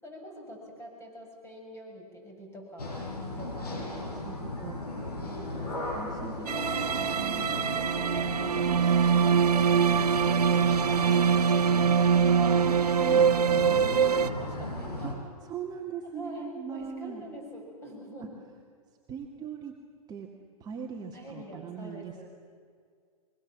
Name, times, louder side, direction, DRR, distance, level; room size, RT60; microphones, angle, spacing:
voice 1, 0.0-3.0 3.3-4.1 5.1-6.1 7.9-12.7 13.7-15.2 16.0-18.3 21.1-22.3, right 1 dB, 15° left, 1 dB, 7.0 m, -45 dB
sound 1, 2.8-15.1, left 2 dB, 85° left, 6.6 m, -36 dB
voice 2, 3.9-5.0 5.9-6.5 6.9-7.7 12.7-13.3 15.0-15.2 15.4-17.3 18.2-18.3 19.1-19.8 20.1-20.3 20.6-22.3, right 7 dB, 20° right, 0 dB, 2.0 m, -40 dB
sound 2, 6.5-14.3, right 7 dB, 85° right, 1.1 m, -23 dB
25.0 x 22.5 x 7.4 m, 2.1 s
hypercardioid pair, 130°, 19 cm